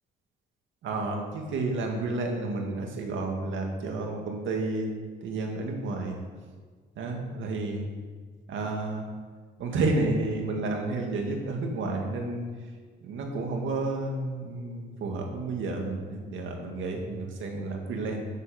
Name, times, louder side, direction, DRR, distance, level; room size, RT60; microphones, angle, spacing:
voice 1, 0.8-4.9 5.2-6.2 7.0-7.9 8.5-9.1 9.6-12.5 13.0-18.3, right 2 dB, 75° right, 1 dB, 2.1 m, -31 dB
8.1 x 7.7 x 6.6 m, 1.6 s
cardioid pair, 90°, 20 cm